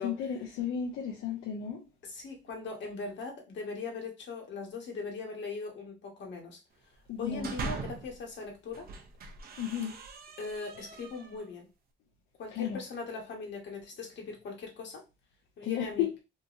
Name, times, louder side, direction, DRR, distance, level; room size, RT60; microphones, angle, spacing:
voice 1, 0.0-1.8 7.1-7.5 9.6-9.9 12.5-12.8 15.6-16.1, left 9 dB, 90° left, 0.5 m, -33 dB
voice 2, 2.0-6.6 7.2-8.9 10.4-11.7 12.4-15.0 15.6-16.1, left 4 dB, 65° left, 1.1 m, -40 dB
sound 1, 7.1-8.2 8.7-11.5, right 4 dB, 50° right, 0.6 m, -41 dB
2.8 x 2.6 x 2.4 m
cardioid pair, 90°, 20 cm